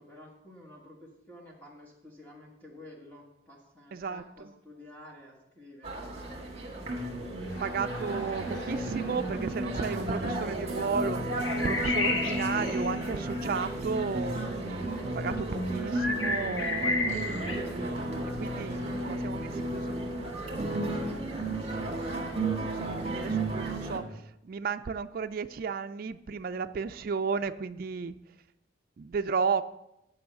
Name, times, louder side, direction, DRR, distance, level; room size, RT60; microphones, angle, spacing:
voice 1, 0.0-6.4 6.6-6.7 18.8-18.9, left 1 dB, 10° left, -3 dB, 1.3 m, -51 dB
voice 2, 3.9-4.5 7.2-17.6 18.4-20.0 22.2-28.1 29.0-29.7, right 5 dB, 50° right, 9 dB, 0.3 m, -34 dB
sound 1, 5.8-24.0, right 1 dB, 30° right, 1.6 m, -33 dB
Crowd, 7.4-12.6, left 2 dB, 35° left, 3.0 m, -49 dB
sound 2, 11.4-13.2 15.9-17.6, left 3 dB, 85° left, 1.3 m, -31 dB
9.5 x 5.5 x 6.6 m, 0.87 s
head